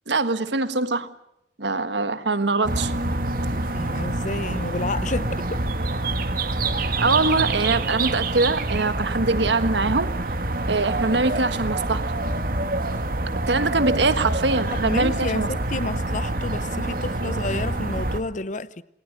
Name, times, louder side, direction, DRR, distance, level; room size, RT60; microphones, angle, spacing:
voice 1, 0.1-1.1 1.6-2.9 7.0-10.1 10.7-12.0 13.5-15.5 17.2-17.3, right 3 dB, 85° right, 1.6 m, -23 dB
sound 1, 2.6-18.2, right 2 dB, 55° right, 1.8 m, -26 dB
voice 2, 3.7-5.6 14.7-18.8, left 2 dB, 45° left, 0.9 m, -30 dB
28.0 x 20.5 x 6.7 m
head